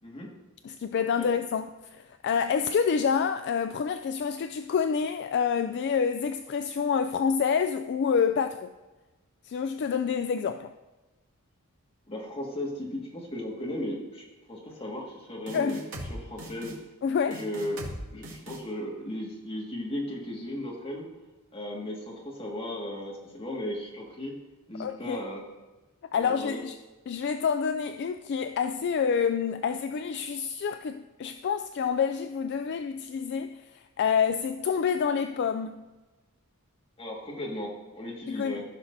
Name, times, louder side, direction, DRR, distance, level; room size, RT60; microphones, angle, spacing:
voice 1, 0.6-1.7 1.9-8.7 9.4-10.7 15.5-15.8 17.0-17.4 24.8-25.2 26.1-26.7 27.1-33.6 34.0-35.9 38.3-38.6, left 6 dB, 50° left, 0.3 m, -27 dB
voice 2, 12.1-14.2 14.5-15.8 16.1-16.8 17.3-17.8 18.1-21.1 21.5-24.4 24.7-25.4 26.1-26.6 37.0-38.6, left 1 dB, 25° left, 1.8 m, -36 dB
sound 1, 15.5-16.1 16.4-16.7 17.3-18.0 18.2-18.6, right 1 dB, 80° right, 2.2 m, -39 dB
15.0 x 5.9 x 2.7 m
head